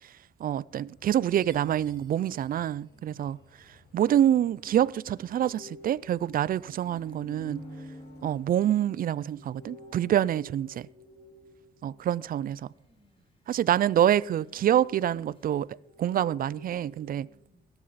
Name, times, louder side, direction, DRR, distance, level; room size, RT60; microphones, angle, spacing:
voice 1, 0.4-3.4 3.9-7.6 8.2-10.9 11.8-12.7 13.5-15.7 16.0-17.3, right 11 dB, 50° right, 0.4 m, -26 dB
sound 1, 0.7-8.5, left 4 dB, 65° left, 2.4 m, -61 dB
Chime, 1.3-3.6, right 4 dB, 25° right, 3.0 m, -62 dB
sound 2, 4.6-11.9 13.8-17.1, left 1 dB, 30° left, 3.4 m, -49 dB
voice 2, 11.8-13.3 17.2-17.7, right 1 dB, 5° right, 7.2 m, -65 dB
16.0 x 13.5 x 4.1 m
cardioid pair, 110°, 18 cm